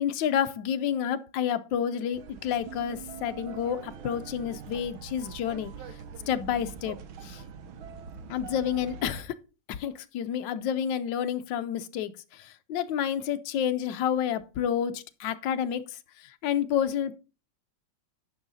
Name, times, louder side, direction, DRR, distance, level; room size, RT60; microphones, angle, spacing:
voice 1, 0.0-5.7 6.3-7.4 8.3-9.3 9.7-17.2, left 9 dB, 70° left, 1.3 m, -30 dB
sound 1, 2.1-9.2, right 6 dB, 75° right, 1.6 m, -43 dB
9.9 x 5.6 x 4.0 m
omnidirectional pair, 2.3 m